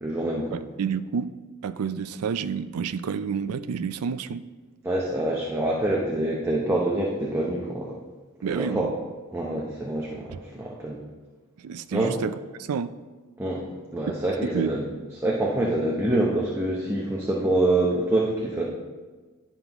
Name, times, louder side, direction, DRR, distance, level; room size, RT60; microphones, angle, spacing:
voice 1, 0.0-0.6 4.8-8.0 8.5-8.9 9.3-11.0 11.9-12.1 13.4-13.6 13.9-14.8 15.2-18.6, right 1 dB, 10° right, -3 dB, 0.8 m, -26 dB
voice 2, 0.5-1.3 1.6-4.4 8.4-8.9 10.3-10.4 11.6-12.3 12.6-12.9 14.5-14.7, right 6 dB, 70° right, 13 dB, 0.4 m, -29 dB
11.0 x 5.3 x 3.0 m, 1.3 s
head